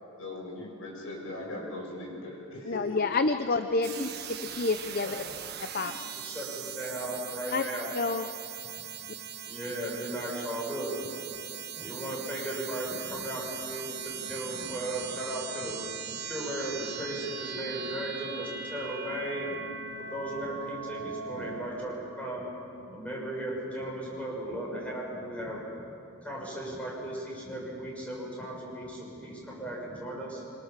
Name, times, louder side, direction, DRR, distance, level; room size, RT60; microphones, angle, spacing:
voice 1, 0.2-3.0 5.0-5.1 5.7-5.8, left 2 dB, 70° left, -2 dB, 7.4 m, -39 dB
voice 2, 2.6-4.1 4.5-5.2 5.6-5.9 7.5-7.6 7.9-8.3, left 3 dB, 45° left, 9 dB, 0.7 m, -28 dB
sound 1, 3.8-21.7, right 7 dB, 50° right, 1.4 m, -40 dB
voice 3, 6.1-7.9 8.7-8.8 9.4-10.9 11.7-15.8 16.1-19.5 20.0-22.4 22.8-25.6 26.2-30.4, right 1 dB, 5° left, -4 dB, 6.9 m, -36 dB
25.5 x 25.5 x 7.4 m, 2.7 s
head